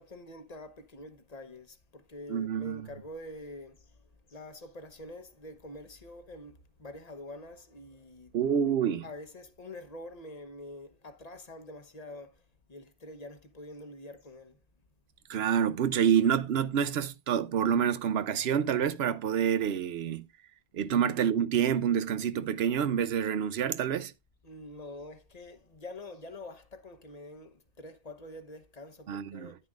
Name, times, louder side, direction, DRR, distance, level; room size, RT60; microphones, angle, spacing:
voice 1, 0.0-8.3 8.7-12.4 12.7-14.6 24.4-29.6, left 1 dB, 40° left, 1.1 m, -46 dB
voice 2, 2.3-2.9 8.3-9.0 15.3-20.3 20.7-24.1 29.1-29.5, right 8 dB, 75° right, 0.9 m, -27 dB
10.0 x 9.7 x 2.4 m
omnidirectional pair, 1.1 m